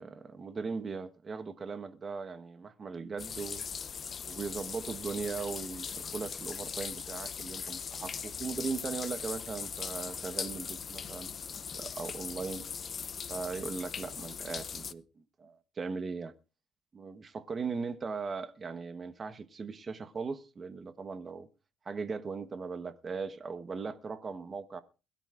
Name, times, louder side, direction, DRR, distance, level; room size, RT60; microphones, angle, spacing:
voice 1, 0.0-3.6 4.3-11.3 11.7-12.7 13.3-16.3 16.9-21.5 21.8-24.8, right 5 dB, 30° right, 1.1 m, -39 dB
sound 1, 3.2-14.9, left 6 dB, 35° left, 0.6 m, -40 dB
21.5 x 13.0 x 2.5 m
cardioid pair, 130°, 0 cm